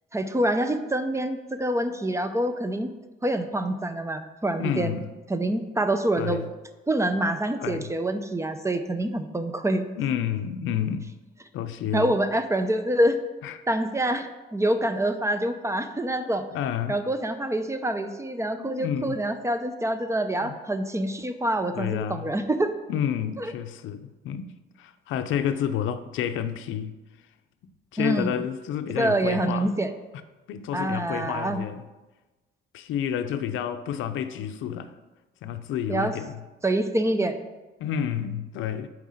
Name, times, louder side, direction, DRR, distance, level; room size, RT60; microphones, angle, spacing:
voice 1, 0.1-2.9 3.2-5.0 5.3-6.4 6.9-9.9 11.9-13.2 13.7-16.5 16.9-22.7 23.4-23.5 28.0-28.4 29.0-29.9 30.7-31.6 35.9-36.2 36.6-37.4, right 1 dB, 15° right, 9 dB, 0.5 m, -26 dB
voice 2, 4.6-5.1 6.2-6.5 7.6-7.9 10.0-11.1 11.5-12.1 13.4-13.6 16.2-16.9 18.6-19.2 20.4-20.5 21.7-22.3 22.9-27.0 27.9-29.7 30.5-31.8 32.7-34.9 35.4-36.4 37.8-38.9, left 9 dB, 85° left, 10 dB, 0.5 m, -30 dB
5.4 x 4.7 x 6.3 m, 1.1 s
cardioid pair, 90°, 20 cm